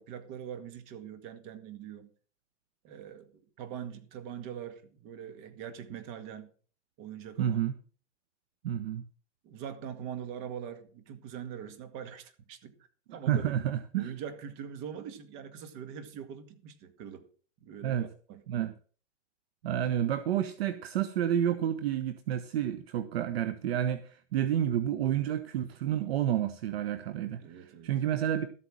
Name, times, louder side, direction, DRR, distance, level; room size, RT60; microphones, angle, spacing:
voice 1, 0.0-2.1 2.8-6.5 7.0-7.7 9.4-12.8 13.1-13.6 14.0-17.3 17.6-18.4 27.4-27.9, right 8 dB, 35° right, 1.9 m, -43 dB
voice 2, 7.4-7.7 8.6-9.0 13.1-14.1 17.8-18.1 18.5-18.7 19.6-28.5, right 10 dB, 55° right, 1.1 m, -30 dB
13.0 x 8.6 x 6.3 m
hypercardioid pair, 145°, 37 cm